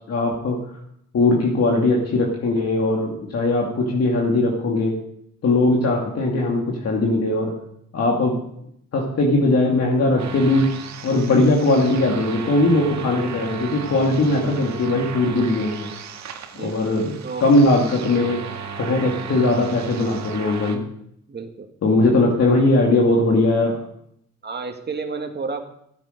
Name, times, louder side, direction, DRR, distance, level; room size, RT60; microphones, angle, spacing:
voice 1, 0.1-0.6 1.1-4.9 5.4-7.5 7.9-8.4 8.9-10.7 11.0-15.9 16.6-17.1 17.4-18.4 18.8-20.8 21.8-23.8, left 2 dB, 55° left, -1 dB, 2.5 m, -19 dB
sound 1, 10.2-20.8, right 6 dB, 65° right, 1.8 m, -35 dB
voice 2, 21.3-21.7 22.5-22.8 24.4-25.6, right 4 dB, 35° right, 5 dB, 2.1 m, -31 dB
15.0 x 9.0 x 5.2 m, 0.73 s
cardioid pair, 90°, 30 cm